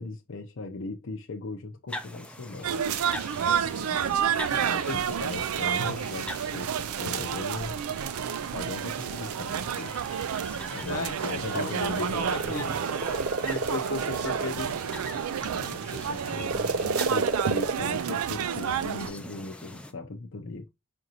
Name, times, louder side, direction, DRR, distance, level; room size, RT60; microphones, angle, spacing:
voice 1, 0.0-2.8 4.5-7.8 8.5-10.0 10.7-12.8 15.2-20.7, left 3 dB, 60° left, 0.6 m, -39 dB
sound 1, 1.9-19.9, left 1 dB, 5° left, 0.4 m, -43 dB
sound 2, 2.6-19.1, right 8 dB, 85° right, 0.4 m, -30 dB
voice 2, 10.9-12.8 13.4-14.8, left 3 dB, 85° left, 0.9 m, -35 dB
sound 3, 11.4-15.8 16.4-17.7, right 3 dB, 55° right, 0.8 m, -30 dB
5.2 x 2.5 x 2.8 m
head